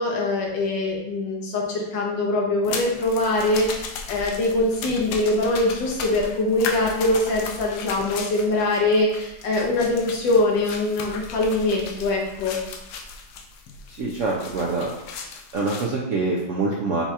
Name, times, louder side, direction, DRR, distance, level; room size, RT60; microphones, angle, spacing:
voice 1, 0.0-12.6, left 2 dB, 90° left, -1 dB, 1.7 m, -23 dB
sound 1, 2.6-15.9, left 4 dB, 70° left, 1.1 m, -36 dB
voice 2, 13.9-14.9 15.5-17.0, right 3 dB, 70° right, -2 dB, 0.7 m, -25 dB
5.4 x 2.3 x 4.2 m, 0.89 s
omnidirectional pair, 2.0 m